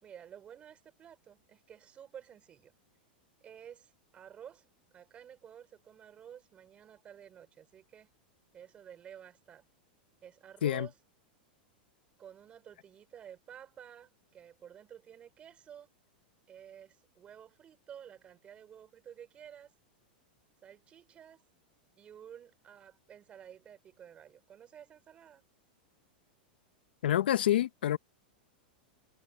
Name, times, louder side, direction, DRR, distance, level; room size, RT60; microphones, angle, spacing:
voice 1, 0.0-2.7 3.4-8.1 8.5-9.7 10.2-10.9 12.2-15.9 16.5-19.7 20.6-21.4 22.0-25.4, right 9 dB, 25° right, 4.6 m, -52 dB
voice 2, 27.0-28.0, left 12 dB, 90° left, 0.8 m, -27 dB
supercardioid pair, 150°, 5 cm